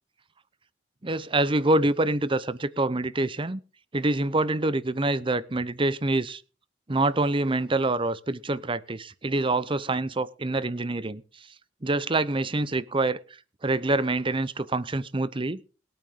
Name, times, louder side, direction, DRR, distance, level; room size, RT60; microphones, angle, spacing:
voice 1, 1.0-3.6 3.9-6.4 6.9-11.2 11.8-13.2 13.6-15.6, right 2 dB, 30° right, 0.8 m, -26 dB
21.0 x 9.1 x 3.8 m
head